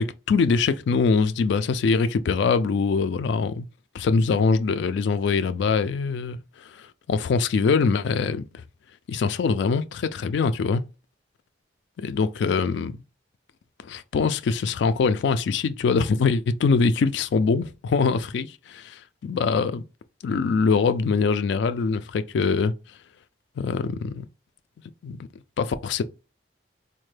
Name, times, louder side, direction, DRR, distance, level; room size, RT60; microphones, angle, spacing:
voice 1, 0.0-3.7 3.9-8.4 9.1-10.8 12.0-13.0 13.8-19.8 20.2-22.7 23.6-24.2 25.0-25.3 25.6-26.0, left 5 dB, 65° left, 0.3 m, -23 dB
4.3 x 2.1 x 3.2 m
head